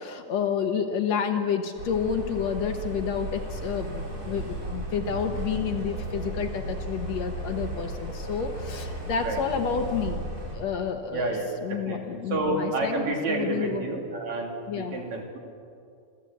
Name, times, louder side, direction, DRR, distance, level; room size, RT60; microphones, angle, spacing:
voice 1, 0.0-10.2 10.5-13.9 14.7-15.1, left 7 dB, 65° left, 5 dB, 2.1 m, -30 dB
sound 1, 1.8-10.6, right 2 dB, 30° right, 4.6 m, -35 dB
voice 2, 11.1-15.4, right 2 dB, 60° right, 0 dB, 4.3 m, -30 dB
27.5 x 14.0 x 8.4 m, 2.5 s
omnidirectional pair, 3.6 m